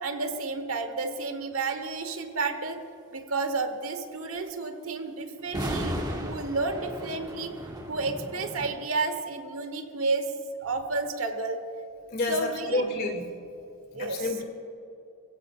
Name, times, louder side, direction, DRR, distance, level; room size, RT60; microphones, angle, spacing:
voice 1, 0.0-2.8 3.1-7.5 7.9-10.3 10.6-11.6 12.3-13.1 13.9-14.3, right 3 dB, 80° right, 7 dB, 1.4 m, -31 dB
sound 1, 5.5-8.7, equal, 20° right, 1.6 m, -34 dB
voice 2, 12.1-13.2 13.9-14.4, left 2 dB, 45° left, 2 dB, 2.7 m, -29 dB
22.0 x 16.0 x 2.5 m, 2.6 s
head